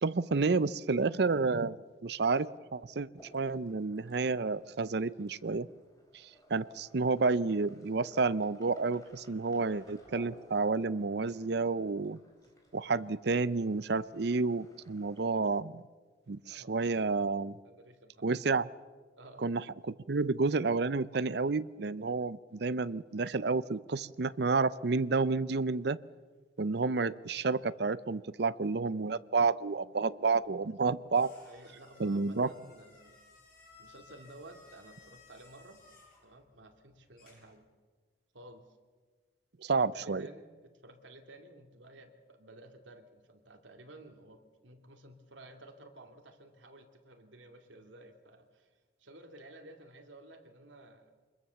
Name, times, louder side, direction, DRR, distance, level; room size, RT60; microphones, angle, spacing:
voice 1, 0.0-1.8 2.0-3.1 3.3-5.7 6.1-12.2 12.7-15.8 16.3-17.6 18.2-18.7 19.4-26.0 26.6-31.3 32.0-32.5 39.6-40.3, right 4 dB, 60° right, 17 dB, 0.6 m, -30 dB
sound 1, 3.2-15.3, equal, 20° left, 3.8 m, -59 dB
voice 2, 17.6-18.2 19.2-19.5 31.5-33.2 33.8-35.8 36.2-37.6 38.3-38.6 39.8-51.1, right 1 dB, 80° right, 4 dB, 2.5 m, -54 dB
sound 2, 30.3-37.6, left 3 dB, 50° left, 7.9 m, -60 dB
25.0 x 21.5 x 7.0 m, 1.4 s
head